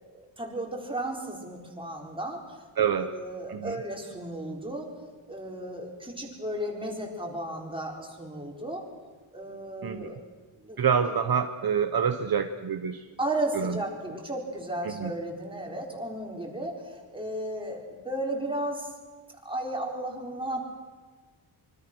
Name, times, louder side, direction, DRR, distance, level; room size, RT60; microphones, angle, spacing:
voice 1, 0.4-2.4 2.9-4.9 5.3-8.8 9.3-10.2 10.6-10.8 13.2-18.9 19.4-20.6, right 1 dB, 10° right, 0 dB, 4.7 m, -34 dB
voice 2, 2.8-3.1 3.5-3.8 9.8-10.1 10.8-13.1 13.5-13.8 14.8-15.1, right 7 dB, 45° right, 8 dB, 1.1 m, -27 dB
25.5 x 25.0 x 6.3 m, 1.4 s
wide cardioid pair, 140°, 48 cm